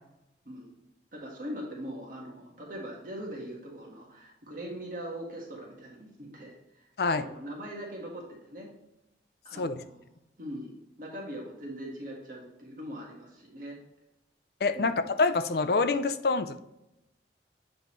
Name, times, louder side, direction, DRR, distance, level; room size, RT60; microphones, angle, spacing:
voice 1, 1.1-6.6 7.2-8.7 9.4-10.0 10.4-13.8 14.7-15.1, equal, 50° right, -2 dB, 1.5 m, -41 dB
voice 2, 14.6-16.6, left 3 dB, 60° left, 11 dB, 0.5 m, -26 dB
7.8 x 5.3 x 3.0 m, 0.87 s
head